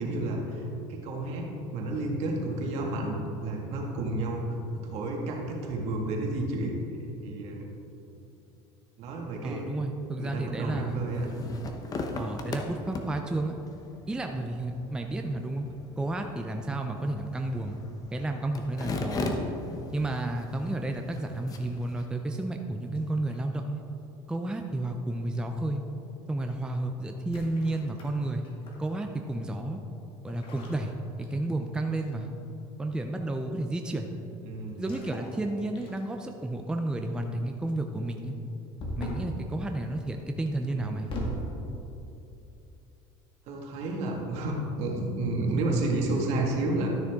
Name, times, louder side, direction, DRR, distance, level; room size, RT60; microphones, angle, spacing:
voice 1, 0.0-4.4 4.7-6.8 7.2-7.6 9.0-9.7 10.2-11.3 34.4-34.9 40.7-41.2 43.5-46.9, right 2 dB, 65° right, -1 dB, 1.8 m, -31 dB
voice 2, 9.4-11.1 12.2-13.6 14.1-15.7 16.0-17.8 18.1-19.3 19.9-23.8 24.3-25.8 26.3-28.5 28.8-29.8 30.2-30.9 31.3-32.3 32.8-34.1 34.8-38.3 39.0-41.1, right 2 dB, 5° right, 4 dB, 0.5 m, -31 dB
sound 1, 10.9-22.1, left 2 dB, 30° left, 0.9 m, -39 dB
sound 2, 22.8-23.6 24.8-25.1 27.2-28.9 30.3-31.6 32.0-32.3 34.7-35.4 35.7-36.3 38.8-39.4 40.6-41.5, equal, 45° left, 1.9 m, -39 dB
12.5 x 6.6 x 3.6 m, 2.8 s
cardioid pair, 120°, 12 cm